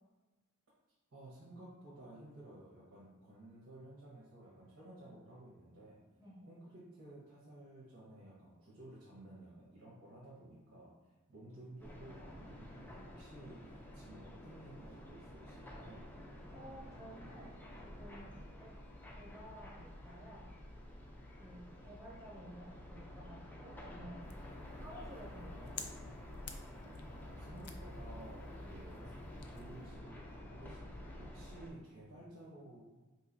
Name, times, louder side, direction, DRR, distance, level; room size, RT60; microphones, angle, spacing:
voice 1, 1.1-6.0 6.4-16.1 27.1-32.8, right 1 dB, 90° right, -8 dB, 1.1 m, -54 dB
sound 1, 11.8-31.7, left 1 dB, 10° left, 0.4 m, -50 dB
voice 2, 16.5-18.8 19.1-20.5 21.4-24.5 24.8-25.8, right 1 dB, 15° right, -5 dB, 0.9 m, -53 dB
sound 2, 24.2-29.9, left 4 dB, 85° left, 0.4 m, -52 dB
3.8 x 2.9 x 2.6 m, 1.2 s
head